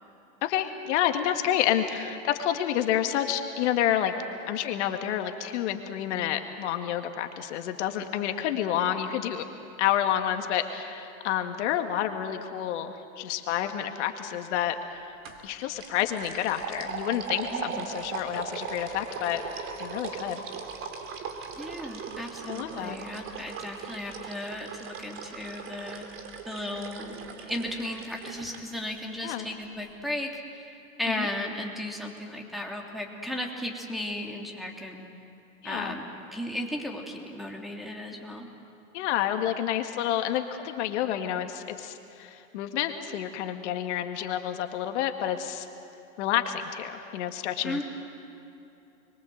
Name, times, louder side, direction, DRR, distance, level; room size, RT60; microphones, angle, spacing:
voice 1, 0.4-4.1 4.5-9.5 9.8-15.1 15.4-19.4 19.8-20.4 22.5-23.2 29.2-29.5 31.2-31.3 35.6-36.0 38.9-45.7 46.2-47.8, left 11 dB, 55° left, 6 dB, 2.0 m, -29 dB
sound 1, 15.2-15.5 15.8-28.6, right 6 dB, 30° right, 2.9 m, -39 dB
voice 2, 17.5-18.0 21.6-26.1 26.4-27.1 27.5-30.7 31.0-35.1 35.6-38.5 47.6-47.8, left 1 dB, ahead, 1 dB, 3.3 m, -35 dB
30.0 x 23.0 x 8.0 m, 2.8 s
hypercardioid pair, 115°, 41 cm